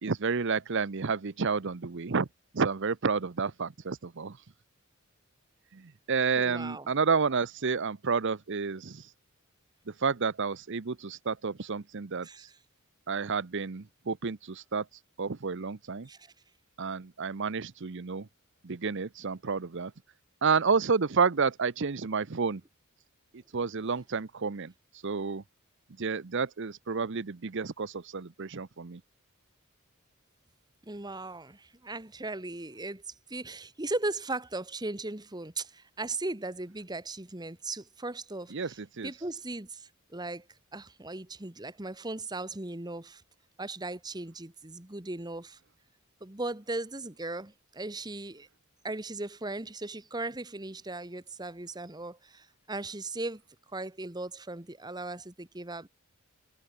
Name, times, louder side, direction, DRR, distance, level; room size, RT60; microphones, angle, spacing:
voice 1, 0.0-2.3 2.5-4.3 6.1-9.1 10.0-12.5 13.1-14.8 15.2-16.1 16.8-18.2 18.6-19.9 20.4-22.6 23.5-24.7 25.0-25.4 26.0-29.0 38.5-39.1, right 5 dB, 55° right, 0.7 m, -30 dB
voice 2, 6.3-6.9 12.2-12.6 16.1-16.3 30.8-40.5 40.7-43.2 43.6-45.6 46.2-48.5 48.8-53.4 53.7-55.9, right 2 dB, 20° right, 1.4 m, -38 dB
head